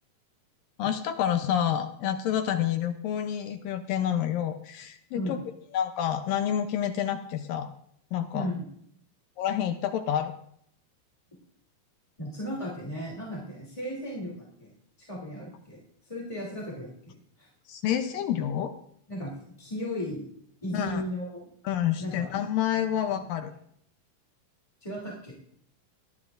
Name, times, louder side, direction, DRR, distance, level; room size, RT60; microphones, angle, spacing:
voice 1, 0.8-5.4 5.7-7.7 8.1-8.5 9.4-10.3 17.7-18.7 20.7-21.0 21.7-23.5, left 10 dB, 75° left, 7 dB, 2.3 m, -28 dB
voice 2, 8.3-8.7 12.2-14.7 15.0-17.5 19.1-20.3 20.6-21.5 22.0-22.3 23.1-23.2 24.8-25.3, equal, 10° left, -4 dB, 2.4 m, -36 dB
20.0 x 12.5 x 2.5 m, 0.67 s
omnidirectional pair, 4.3 m